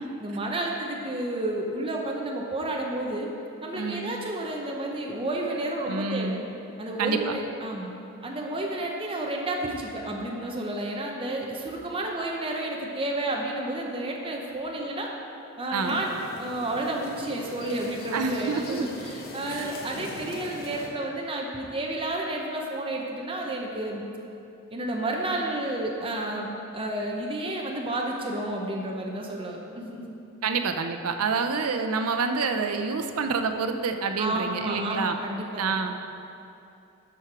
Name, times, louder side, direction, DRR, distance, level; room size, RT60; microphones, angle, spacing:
voice 1, 0.2-3.3 3.6-6.4 6.8-7.9 8.2-15.1 15.6-16.1 16.4-24.1 24.7-30.1 34.2-35.7, right 1 dB, 25° right, -1 dB, 0.8 m, -31 dB
voice 2, 3.7-4.1 5.9-6.5 7.0-7.3 15.7-16.0 18.1-18.9 19.5-19.7 30.4-35.2 35.6-36.0, right 4 dB, 85° right, 6 dB, 0.6 m, -28 dB
sound 1, 15.8-20.9, left 2 dB, 45° left, 1.0 m, -41 dB
12.5 x 4.6 x 4.8 m, 2.7 s
head